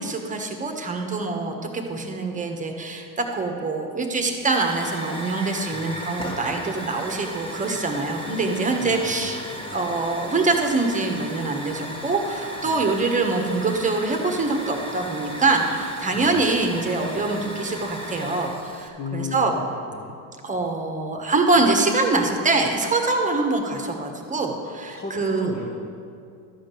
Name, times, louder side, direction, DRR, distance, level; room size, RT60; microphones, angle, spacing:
voice 1, 0.0-9.4 9.7-19.6 20.4-25.5, right 3 dB, 15° right, 3 dB, 1.3 m, -24 dB
Hiss / Fire, 4.4-18.9, equal, 10° left, 1.6 m, -36 dB
voice 2, 5.7-6.1 8.8-9.8 12.6-12.9 16.1-16.5 19.0-20.2 24.9-25.9, left 4 dB, 30° left, -1 dB, 1.1 m, -36 dB
12.5 x 5.1 x 7.5 m, 2.5 s
supercardioid pair, 105°, 43 cm